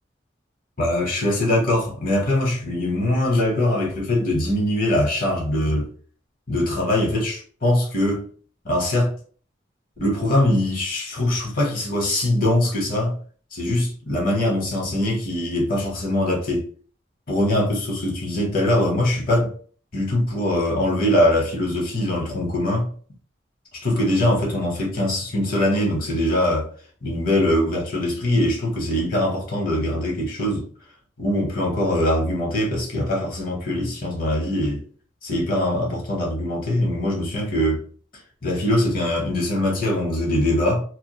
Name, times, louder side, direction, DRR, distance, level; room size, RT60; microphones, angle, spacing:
voice 1, 0.8-5.9 6.5-8.3 8.6-9.1 10.0-13.1 13.5-16.7 17.3-19.5 19.9-22.9 23.7-26.7 27.0-30.7 31.2-34.8 35.2-37.8 38.4-40.8, left 1 dB, 50° left, 1.0 m, -22 dB
3.0 x 2.2 x 2.2 m
head